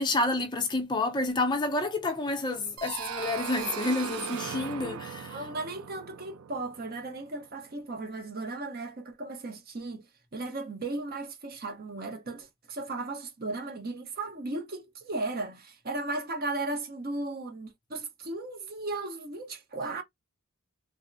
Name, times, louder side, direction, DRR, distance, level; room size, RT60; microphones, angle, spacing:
voice 1, 0.0-5.4, left 2 dB, 20° left, 0.5 m, -29 dB
sound 1, 2.8-7.4, right 8 dB, 85° right, 0.4 m, -38 dB
voice 2, 5.3-10.1 10.3-20.0, right 2 dB, 45° right, 0.7 m, -36 dB
3.3 x 2.0 x 2.5 m
head